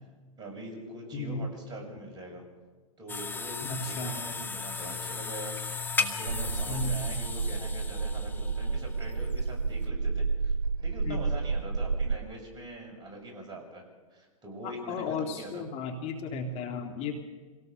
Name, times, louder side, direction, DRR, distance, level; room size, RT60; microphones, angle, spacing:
voice 1, 0.4-2.4 3.0-10.5 10.8-13.8 14.1-15.6, right 1 dB, 20° right, 1 dB, 7.1 m, -43 dB
voice 2, 1.1-1.5 3.7-4.1 6.7-7.0 11.0-11.2 14.6-17.2, left 4 dB, 35° left, 4 dB, 2.3 m, -34 dB
sound 1, 3.1-9.9, left 5 dB, 10° left, 1.5 m, -36 dB
sound 2, 6.3-12.2, right 4 dB, 90° right, 0.6 m, -30 dB
26.0 x 18.0 x 6.7 m, 1.4 s
hypercardioid pair, 115°, 18 cm